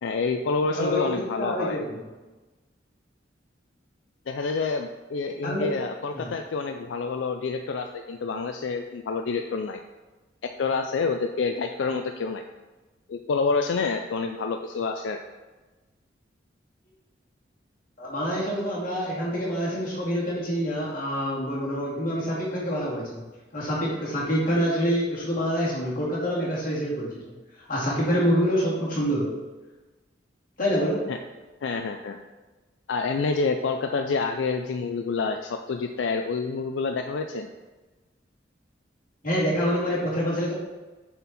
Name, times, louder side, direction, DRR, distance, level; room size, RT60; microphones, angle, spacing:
voice 1, 0.0-1.8 4.3-9.8 10.4-12.4 13.1-15.2 31.1-31.2 31.6-32.2 32.9-37.5, left 4 dB, 80° left, 5 dB, 0.4 m, -28 dB
voice 2, 0.8-2.1 5.4-5.7 6.1-6.3 18.0-23.2 23.5-27.2 27.6-29.4 30.6-31.1 39.2-40.5, equal, 45° left, -6 dB, 2.2 m, -26 dB
7.1 x 4.4 x 4.1 m, 1.2 s
head